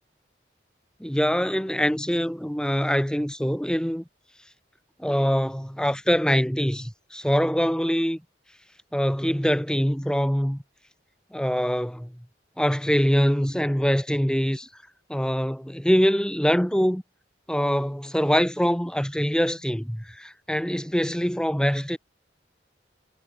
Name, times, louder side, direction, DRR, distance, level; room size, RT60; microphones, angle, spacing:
voice 1, 1.0-4.0 5.0-8.2 8.9-10.6 11.3-12.1 12.6-14.7 15.1-17.0 17.5-22.0, equal, 5° left, 1.7 m, -24 dB
head